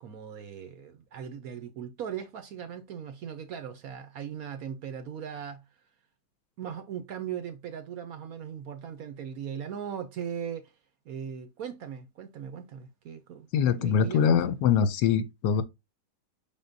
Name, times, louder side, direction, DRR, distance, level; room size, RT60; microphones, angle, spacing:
voice 1, 0.0-5.6 6.6-10.7 11.1-14.6, right 8 dB, 70° right, 0.9 m, -39 dB
voice 2, 13.5-15.6, left 7 dB, 75° left, 1.1 m, -23 dB
5.6 x 3.6 x 2.5 m
omnidirectional pair, 1.9 m